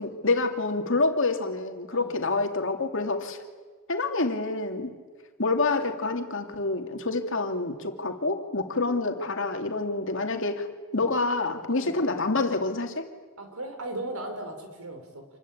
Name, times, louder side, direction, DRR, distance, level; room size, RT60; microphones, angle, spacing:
voice 1, 0.0-3.4 3.9-4.9 5.4-13.1, left 3 dB, 60° left, 5 dB, 2.7 m, -27 dB
voice 2, 13.4-15.3, right 1 dB, 80° right, 6 dB, 4.9 m, -37 dB
27.5 x 21.5 x 8.8 m, 1.4 s
head